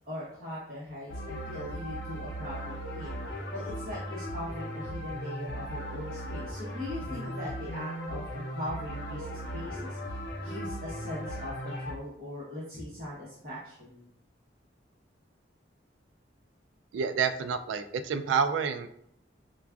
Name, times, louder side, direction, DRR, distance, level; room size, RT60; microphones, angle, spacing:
voice 1, 0.1-3.2 3.5-14.0, left 1 dB, 50° right, -7 dB, 1.0 m, -40 dB
sound 1, 1.1-11.9, equal, 70° left, 0.7 m, -37 dB
voice 2, 16.9-18.9, right 6 dB, 90° right, 10 dB, 0.3 m, -28 dB
4.8 x 2.3 x 2.3 m, 0.73 s
head